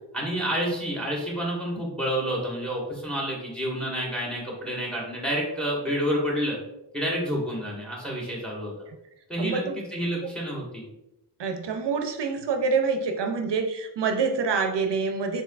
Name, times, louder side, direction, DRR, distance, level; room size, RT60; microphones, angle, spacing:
voice 1, 0.1-6.6 6.9-8.7 9.3-9.6 9.9-10.8, equal, ahead, -3 dB, 1.3 m, -29 dB
voice 2, 9.4-9.8 11.4-15.4, right 5 dB, 80° right, 6 dB, 0.5 m, -26 dB
4.5 x 3.8 x 2.3 m, 0.90 s
wide cardioid pair, 105°, 42 cm